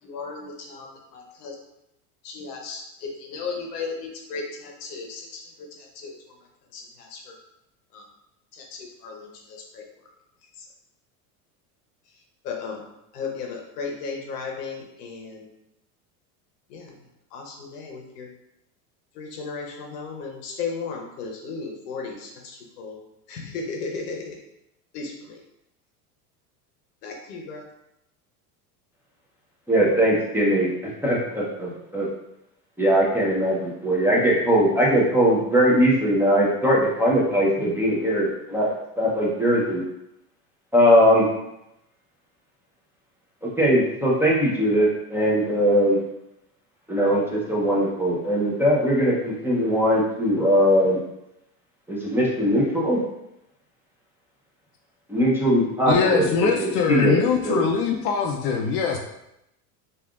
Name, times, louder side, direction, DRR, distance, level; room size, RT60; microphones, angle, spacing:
voice 1, 0.0-1.5 2.2-7.4 7.9-8.0 8.5-9.9 10.6-10.7 12.1-12.8 13.1-15.5 16.7-17.0 17.3-18.3 19.1-23.0 23.3-24.4 24.9-25.4 27.0-27.6, left 4 dB, 90° left, 1 dB, 0.8 m, -35 dB
voice 2, 29.7-32.1 32.8-39.8 40.7-41.3 43.4-46.0 46.9-51.0 51.9-53.0 55.1-57.2 57.4-57.6, equal, 5° right, -5 dB, 0.6 m, -20 dB
voice 3, 55.9-59.0, left 6 dB, 45° left, 0 dB, 0.4 m, -22 dB
3.3 x 2.5 x 2.3 m, 0.84 s
supercardioid pair, 105°, 46 cm